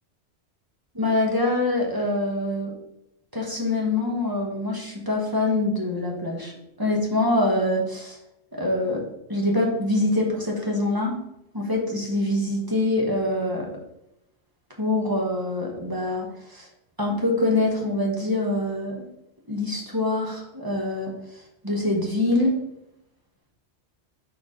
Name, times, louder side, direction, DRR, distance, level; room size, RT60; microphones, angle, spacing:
voice 1, 0.9-2.7 3.3-6.5 6.8-8.2 8.5-9.0 9.3-11.2 11.5-13.7 14.8-16.7 17.0-19.1 19.5-22.6, left 2 dB, 20° right, -1 dB, 1.1 m, -25 dB
4.5 x 4.4 x 5.1 m, 0.85 s
omnidirectional pair, 1.2 m